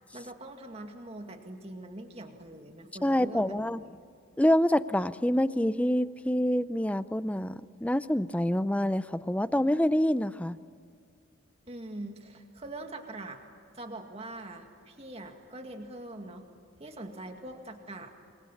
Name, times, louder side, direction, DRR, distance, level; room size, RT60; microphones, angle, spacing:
voice 1, 0.1-4.0 11.7-13.4 13.7-16.5 16.8-18.1, right 1 dB, 30° right, 4 dB, 2.1 m, -43 dB
voice 2, 3.0-3.8 4.4-10.6, left 1 dB, 5° left, 14 dB, 0.5 m, -26 dB
28.5 x 22.0 x 7.2 m, 2.4 s
head